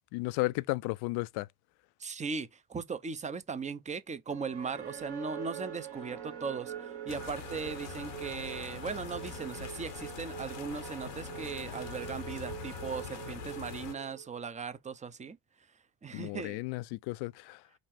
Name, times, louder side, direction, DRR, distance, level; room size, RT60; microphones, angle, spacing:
voice 1, 0.1-1.5 16.1-17.6, left 22 dB, 55° left, 0.5 m, -34 dB
voice 2, 2.0-15.4 16.0-16.6, right 5 dB, 15° right, 0.6 m, -38 dB
sound 1, 4.3-14.5, right 9 dB, 50° right, 1.6 m, -44 dB
sound 2, 7.1-13.9, left 8 dB, 80° left, 0.9 m, -44 dB
5.2 x 2.5 x 3.5 m
figure-of-eight pair, 50°, 47 cm